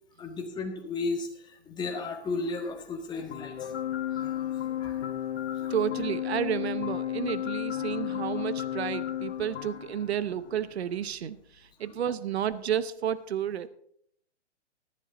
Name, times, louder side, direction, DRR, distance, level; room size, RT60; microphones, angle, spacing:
voice 1, 0.2-5.1 5.6-5.7, left 3 dB, 10° left, 2 dB, 1.6 m, -35 dB
sound 1, 3.3-11.2, left 9 dB, 65° left, 1.5 m, -42 dB
Organ, 3.6-10.1, left 12 dB, 40° left, 0.4 m, -32 dB
voice 2, 5.7-13.7, right 9 dB, 65° right, 15 dB, 0.8 m, -31 dB
14.5 x 11.0 x 3.9 m, 0.69 s
hypercardioid pair, 135°, 34 cm